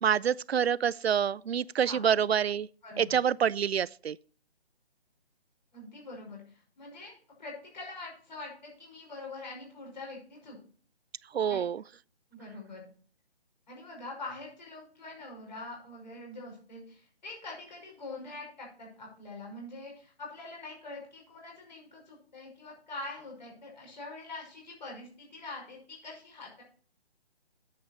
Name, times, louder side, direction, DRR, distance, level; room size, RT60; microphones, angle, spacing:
voice 1, 0.0-2.7 3.0-4.2 11.3-11.8, right 8 dB, 70° right, 0.5 m, -27 dB
voice 2, 2.8-3.2 5.7-10.6 11.5-11.6 12.3-12.9 13.7-26.6, left 2 dB, 45° left, 5.9 m, -44 dB
9.5 x 8.0 x 4.4 m
hypercardioid pair, 175°, 32 cm